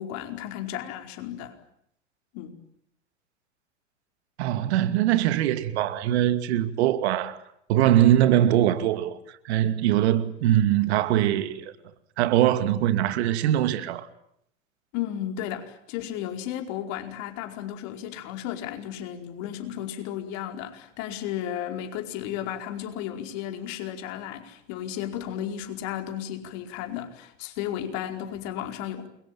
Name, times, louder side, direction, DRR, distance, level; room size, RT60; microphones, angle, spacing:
voice 1, 0.0-1.6 2.3-2.6 14.9-29.1, left 11 dB, 50° left, 4.9 m, -34 dB
voice 2, 4.4-7.4 7.7-9.2 9.4-11.7 12.2-14.1, right 12 dB, 60° right, 2.5 m, -22 dB
29.0 x 23.0 x 9.0 m
hypercardioid pair, 110°, 37 cm